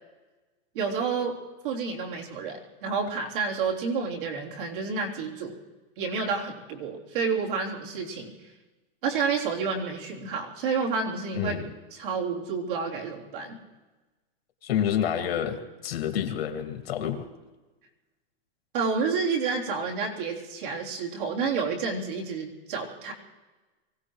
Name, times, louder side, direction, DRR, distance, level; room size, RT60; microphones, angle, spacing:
voice 1, 0.7-1.4 1.6-5.5 6.0-8.3 9.0-11.6 11.9-13.6 18.7-23.1, right 5 dB, 60° right, -3 dB, 3.6 m, -29 dB
voice 2, 14.6-17.2, left 9 dB, 80° left, 5 dB, 2.2 m, -28 dB
24.0 x 17.0 x 3.2 m, 1.2 s
supercardioid pair, 175°, 30 cm